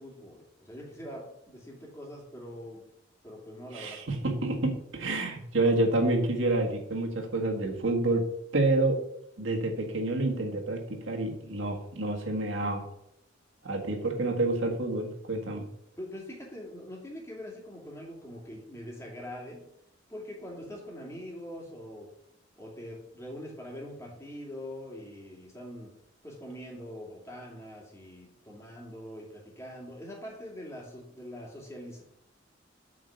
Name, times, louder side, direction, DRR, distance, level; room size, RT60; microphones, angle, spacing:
voice 1, 0.0-2.8 3.2-4.2 16.0-19.7 20.1-22.1 22.6-25.9 26.2-32.0, equal, 15° left, -2 dB, 2.5 m, -43 dB
voice 2, 3.7-8.2 8.5-9.0 9.4-12.8 13.6-15.7, right 2 dB, 90° right, 2 dB, 1.8 m, -28 dB
8.6 x 4.6 x 6.8 m, 0.77 s
head